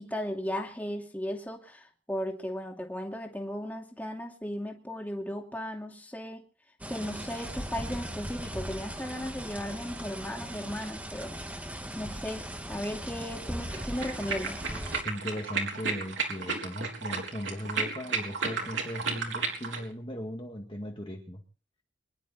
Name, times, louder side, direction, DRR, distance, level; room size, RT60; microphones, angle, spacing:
voice 1, 0.0-6.4 6.9-11.3 11.9-14.6, equal, 10° left, 1 dB, 2.6 m, -36 dB
sound 1, 6.8-15.0, right 1 dB, 10° right, 1.7 m, -39 dB
sound 2, 13.6-19.8, right 4 dB, 75° right, 3.8 m, -33 dB
voice 2, 15.0-21.4, equal, 25° left, 1 dB, 2.0 m, -38 dB
24.0 x 12.0 x 4.2 m, 0.39 s
head